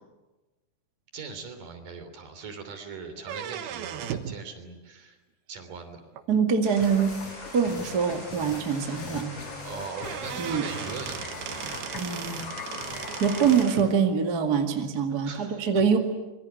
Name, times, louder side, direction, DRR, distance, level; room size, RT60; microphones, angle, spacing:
voice 1, 1.1-5.2 5.5-6.0 9.6-11.6 15.1-15.8, right 5 dB, 55° right, 7 dB, 4.7 m, -41 dB
sound 1, 3.2-4.4 6.2-6.3 7.2-7.3 7.7-7.8 8.1-8.2 9.6-9.7 9.9-13.9, right 9 dB, 80° right, 3.3 m, -37 dB
voice 2, 6.3-7.1 7.5-9.4 10.4-10.6 11.9-12.4 13.2-16.0, right 6 dB, 35° right, 4 dB, 1.9 m, -24 dB
sound 2, 6.6-13.8, left 1 dB, 20° left, 7.3 m, -42 dB
sound 3, 6.8-13.6, left 6 dB, 55° left, 1.8 m, -41 dB
25.5 x 23.0 x 9.2 m, 1.1 s
omnidirectional pair, 4.5 m